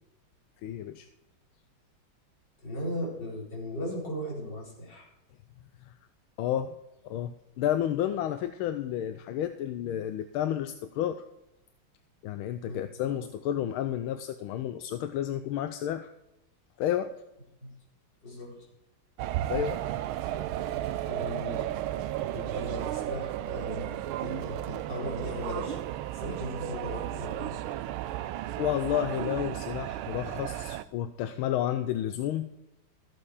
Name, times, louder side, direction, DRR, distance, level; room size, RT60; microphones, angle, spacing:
voice 1, 0.6-1.1 5.9-6.0 6.4-6.7 7.0-11.2 12.2-16.1 16.8-17.1 19.5-19.8 28.6-32.5, left 11 dB, 80° left, 10 dB, 1.5 m, -31 dB
voice 2, 2.6-5.1 12.7-13.2 17.6-17.7 18.2-18.6 21.1-21.7 22.3-25.8 26.1-27.6, left 1 dB, 55° left, -5 dB, 5.1 m, -37 dB
sound 1, 19.2-30.8, right 13 dB, 80° right, 1.4 m, -34 dB
14.0 x 8.5 x 4.9 m, 0.89 s
omnidirectional pair, 2.3 m